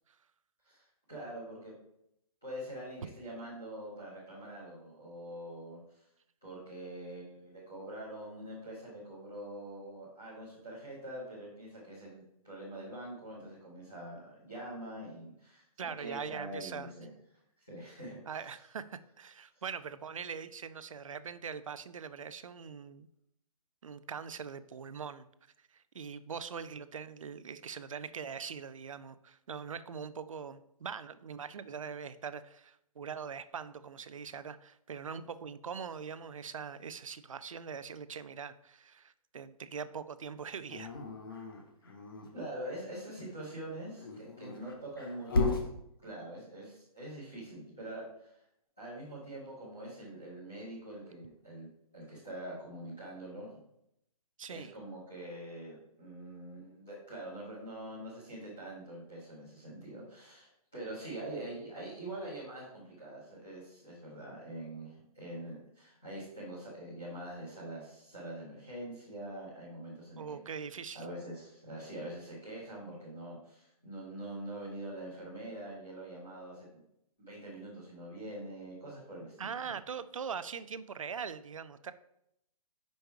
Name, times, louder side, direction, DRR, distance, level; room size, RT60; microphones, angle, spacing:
voice 1, 0.6-1.7 2.4-6.0 6.4-17.1 17.6-18.2 42.3-45.5 46.0-48.4 48.8-51.7 51.9-53.5 54.5-70.4 70.9-76.8 77.2-79.7, right 1 dB, 5° left, -10 dB, 0.4 m, -44 dB
voice 2, 15.8-16.9 18.3-23.1 23.8-25.3 25.7-40.9 54.4-54.7 70.2-71.1 79.4-81.9, right 6 dB, 60° right, 13 dB, 0.4 m, -42 dB
Dog, 40.7-42.3 43.9-45.7, left 3 dB, 35° left, 0.8 m, -34 dB
5.3 x 4.5 x 4.6 m, 0.78 s
hypercardioid pair, 180°, 19 cm